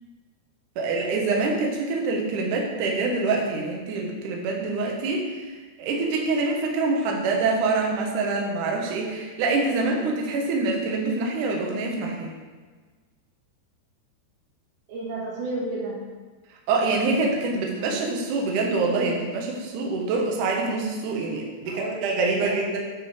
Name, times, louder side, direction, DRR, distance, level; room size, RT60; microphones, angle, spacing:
voice 1, 0.8-12.3 16.7-22.8, right 3 dB, 70° right, -1 dB, 2.0 m, -25 dB
voice 2, 14.9-16.0 21.7-22.6, right 2 dB, 85° right, -5 dB, 4.2 m, -32 dB
9.6 x 3.8 x 4.9 m, 1.4 s
omnidirectional pair, 4.9 m